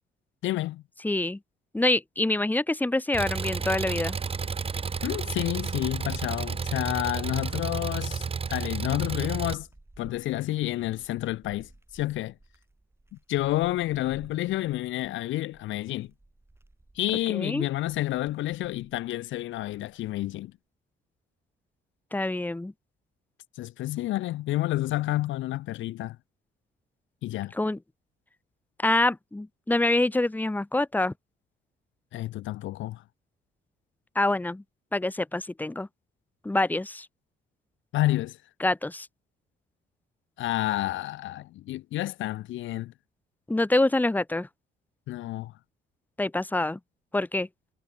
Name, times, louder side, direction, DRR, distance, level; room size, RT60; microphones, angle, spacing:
voice 1, 0.4-0.8 5.0-9.7 10.0-12.3 13.3-16.1 17.0-20.5 23.6-26.2 27.2-27.5 32.1-33.0 37.9-38.4 40.4-42.9 45.1-45.5, left 15 dB, 75° left, 0.5 m, -29 dB
voice 2, 1.0-1.4 1.7-4.2 17.3-17.7 22.1-22.7 27.5-27.8 28.8-31.1 34.1-34.6 34.9-35.9 36.4-37.1 38.6-39.1 43.5-44.5 46.2-46.8 47.1-47.5, left 2 dB, 10° left, 0.9 m, -26 dB
Engine, 3.1-9.5, right 5 dB, 30° right, 0.9 m, -31 dB
sound 1, 7.4-20.5, right 2 dB, 10° right, 5.7 m, -55 dB
cardioid pair, 90°, 20 cm